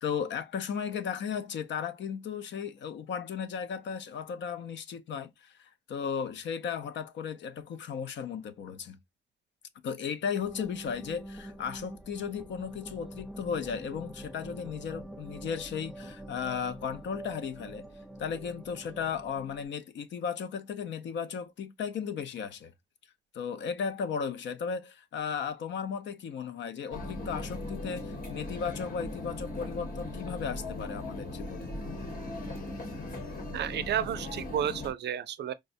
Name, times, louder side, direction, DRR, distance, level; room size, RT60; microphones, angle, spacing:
voice 1, 0.0-9.0 9.8-17.9 18.2-22.7 23.3-31.7, left 7 dB, 80° left, 0.5 m, -35 dB
sound 1, 10.4-19.6, right 1 dB, ahead, 0.6 m, -45 dB
sound 2, 26.9-34.9, left 2 dB, 50° left, 1.1 m, -38 dB
voice 2, 33.5-35.5, right 9 dB, 70° right, 0.4 m, -31 dB
4.6 x 2.1 x 2.6 m
cardioid pair, 115°, 18 cm